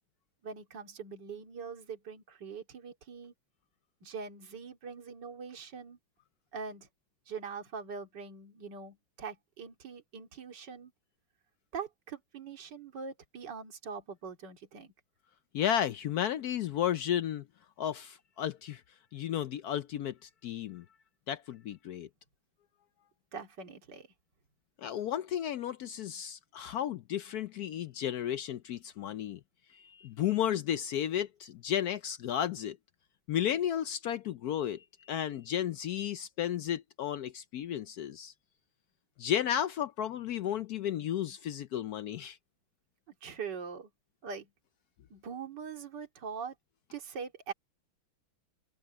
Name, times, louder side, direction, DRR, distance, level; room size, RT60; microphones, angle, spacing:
voice 1, 0.4-3.3 4.0-6.0 6.5-6.9 7.3-10.9 11.7-14.9 23.3-24.1 43.1-43.9 44.2-44.5 45.1-46.5 46.9-47.5, right 6 dB, 55° right, 3.1 m, -42 dB
voice 2, 15.5-17.5 17.8-18.8 19.1-20.8 21.3-22.1 24.8-29.4 29.7-32.8 33.3-38.3 39.2-42.4, left 10 dB, 80° left, 0.8 m, -33 dB
omnidirectional pair, 2.3 m